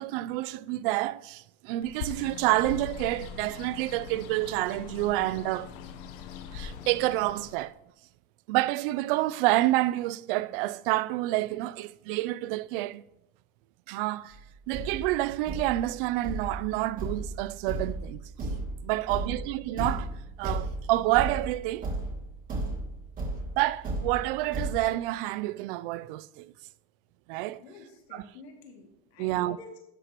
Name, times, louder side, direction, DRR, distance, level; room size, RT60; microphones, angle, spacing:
voice 1, 0.0-5.7 6.5-7.7 8.5-13.0 13.9-14.4 14.7-18.2 18.8-20.1 20.4-21.9 23.6-26.5 27.3-27.6 28.1-28.2 29.2-29.6, right 17 dB, 60° right, 0.4 m, -28 dB
Bird, 1.8-7.7, left 7 dB, 60° left, 1.0 m, -41 dB
Thump thud, 14.3-14.4 14.7-24.8, right 2 dB, 25° right, 2.3 m, -35 dB
voice 2, 18.9-19.4 27.6-29.8, left 4 dB, 90° left, 2.5 m, -49 dB
12.0 x 8.1 x 3.0 m
supercardioid pair, 150°, 31 cm